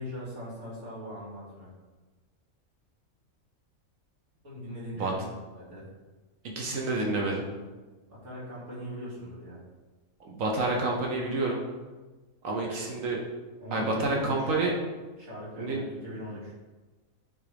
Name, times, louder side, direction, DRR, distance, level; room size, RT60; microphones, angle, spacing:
voice 1, 0.0-1.7 4.4-5.9 8.1-9.6 12.6-12.7 13.6-14.6 15.2-16.5, equal, 55° right, -8 dB, 2.6 m, -40 dB
voice 2, 6.4-7.4 10.2-11.6 12.4-13.2 13.7-14.7 15.6-15.8, right 2 dB, 70° right, -1 dB, 1.2 m, -28 dB
8.7 x 3.5 x 3.3 m, 1.3 s
omnidirectional pair, 1.5 m